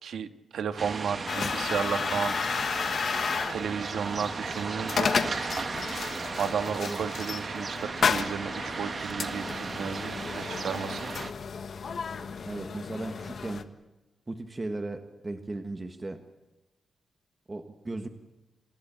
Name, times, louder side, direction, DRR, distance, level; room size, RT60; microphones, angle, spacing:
voice 1, 0.0-2.3 3.5-5.1 6.4-11.1, right 7 dB, 80° right, 9 dB, 1.5 m, -33 dB
sound 1, 0.8-11.3, right 4 dB, 35° right, 1.4 m, -36 dB
sound 2, 1.3-13.6, left 5 dB, 50° left, 1.4 m, -33 dB
voice 2, 12.4-13.7 14.3-16.2 17.5-18.1, right 2 dB, 20° right, 6 dB, 1.5 m, -36 dB
27.5 x 14.5 x 8.9 m, 1.1 s
wide cardioid pair, 145°, 0 cm